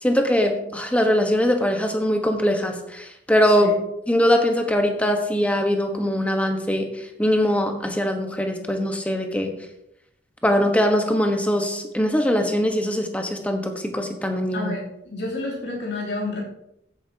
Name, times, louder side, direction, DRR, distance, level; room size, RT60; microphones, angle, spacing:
voice 1, 0.0-3.7 4.1-6.9 7.2-9.5 10.4-14.7, equal, 10° left, 4 dB, 1.2 m, -22 dB
voice 2, 14.5-16.4, left 2 dB, 75° left, -4 dB, 3.1 m, -30 dB
15.5 x 9.1 x 2.9 m, 0.82 s
head